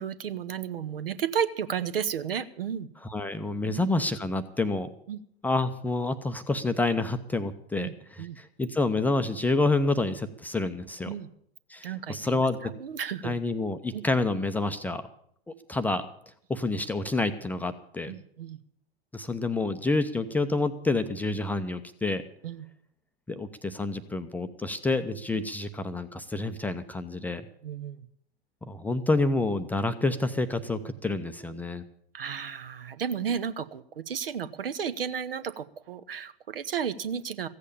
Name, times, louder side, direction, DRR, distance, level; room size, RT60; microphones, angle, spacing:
voice 1, 0.0-2.9 3.6-3.9 5.1-5.2 7.8-8.4 11.1-11.3 11.8-13.3 13.9-14.0 18.1-18.6 22.4-22.7 27.6-28.1 32.1-37.5, right 8 dB, 65° right, 14 dB, 1.0 m, -33 dB
voice 2, 3.1-4.9 5.4-7.9 8.2-11.1 11.7-12.7 13.2-15.0 15.7-16.0 16.5-18.1 19.1-22.2 23.3-27.4 28.6-31.8, left 2 dB, 5° left, 8 dB, 0.6 m, -28 dB
15.5 x 8.3 x 8.7 m, 0.68 s
figure-of-eight pair, 100°, 31 cm